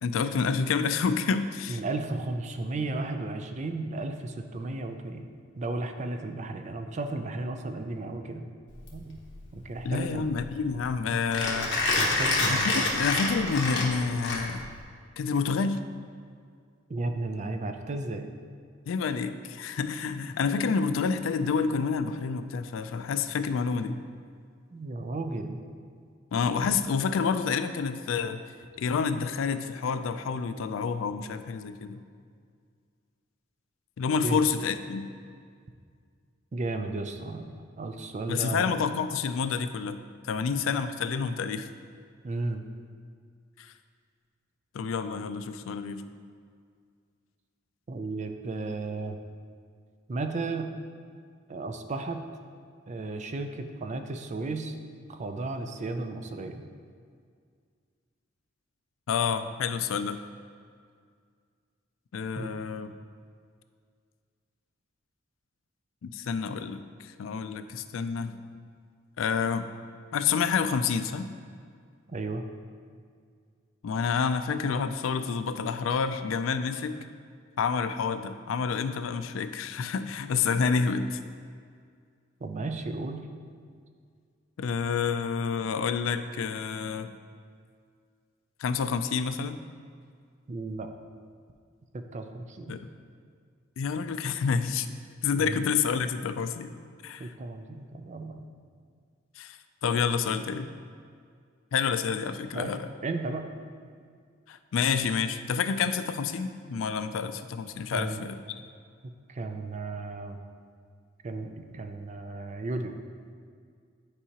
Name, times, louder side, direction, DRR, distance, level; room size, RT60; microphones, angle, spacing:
voice 1, 0.0-1.8 9.8-11.7 12.5-14.7 15.2-15.8 18.9-24.0 26.3-28.4 28.8-32.0 34.0-35.1 38.3-40.0 40.2-41.7 43.6-43.7 44.7-46.0 59.1-60.2 62.1-62.9 66.0-68.4 69.2-69.7 70.1-71.3 73.8-77.0 77.6-81.2 84.6-87.1 88.6-89.6 92.7-92.8 93.8-94.9 95.2-96.7 97.0-97.3 99.4-100.7 101.7-102.9 104.5-108.6, left 5 dB, 80° left, 11 dB, 0.4 m, -28 dB
voice 2, 1.7-5.3 5.6-8.5 8.9-9.2 9.5-10.3 11.9-12.9 16.9-18.3 24.7-25.6 34.2-34.4 36.5-38.7 42.2-42.6 47.9-49.2 50.1-50.7 51.5-52.2 52.9-54.8 55.1-56.6 62.4-62.5 72.1-72.4 82.4-83.3 90.5-90.9 92.1-92.7 95.3-95.6 97.2-98.4 102.5-102.7 103.0-103.5 107.9-108.2 109.3-110.4 111.2-113.0, right 2 dB, 35° right, 7 dB, 0.4 m, -34 dB
Mechanisms, 8.7-14.8, left 2 dB, 65° left, 1.2 m, -28 dB
9.9 x 4.7 x 2.9 m, 2.1 s
head